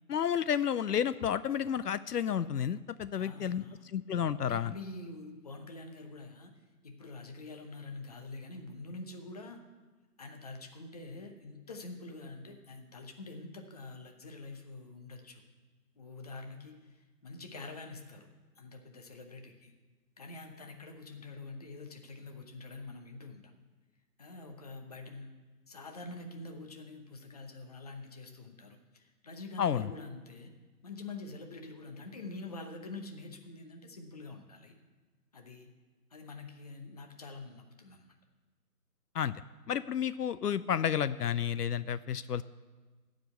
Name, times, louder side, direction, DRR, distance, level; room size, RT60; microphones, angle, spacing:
voice 1, 0.1-3.6 3.9-4.7 29.6-29.9 39.1-39.3 39.7-42.4, left 8 dB, 75° left, 15 dB, 0.5 m, -31 dB
voice 2, 3.2-3.8 4.4-6.5 6.8-9.6 10.2-15.4 16.0-18.3 18.6-19.7 20.2-23.5 24.2-25.3 25.7-30.5 30.8-34.7 35.3-35.7 36.1-38.0, left 3 dB, 25° left, 4 dB, 0.8 m, -46 dB
14.5 x 5.1 x 8.2 m, 1.3 s
figure-of-eight pair, 150°, 47 cm